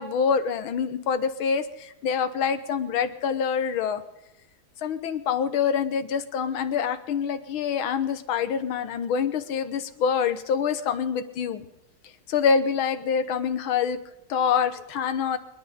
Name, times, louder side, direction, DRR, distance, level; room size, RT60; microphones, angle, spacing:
voice 1, 0.0-4.0 4.8-11.7 12.3-14.0 14.3-15.4, left 6 dB, 75° left, 11 dB, 1.9 m, -26 dB
25.5 x 10.5 x 5.2 m, 0.90 s
omnidirectional pair, 2.4 m